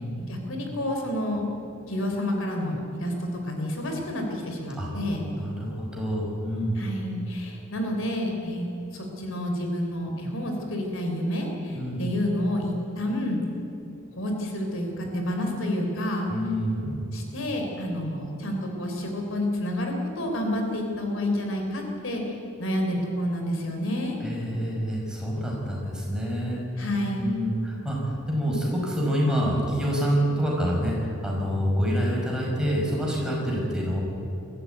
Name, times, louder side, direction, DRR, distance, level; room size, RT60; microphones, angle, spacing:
voice 1, 0.3-1.4 1.9-5.3 6.7-8.7 8.9-13.4 14.2-16.3 17.1-24.2 26.8-27.3, left 1 dB, 65° left, 2 dB, 3.6 m, -29 dB
voice 2, 5.4-6.8 11.8-12.0 16.3-17.0 24.2-26.6 27.2-30.9 31.2-34.0, equal, 5° right, -3 dB, 5.4 m, -27 dB
22.0 x 14.5 x 9.3 m, 2.8 s
head